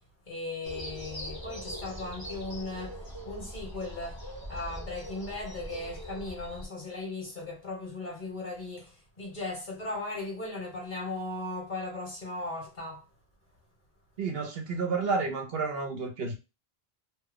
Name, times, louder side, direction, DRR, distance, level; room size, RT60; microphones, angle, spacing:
voice 1, 0.3-4.2 4.5-13.0, left 2 dB, 50° left, 1.5 m, -37 dB
sound 1, 0.6-6.7, equal, 25° left, 0.9 m, -41 dB
voice 2, 14.2-16.3, right 4 dB, 75° right, 1.0 m, -30 dB
2.9 x 2.3 x 3.5 m
omnidirectional pair, 1.0 m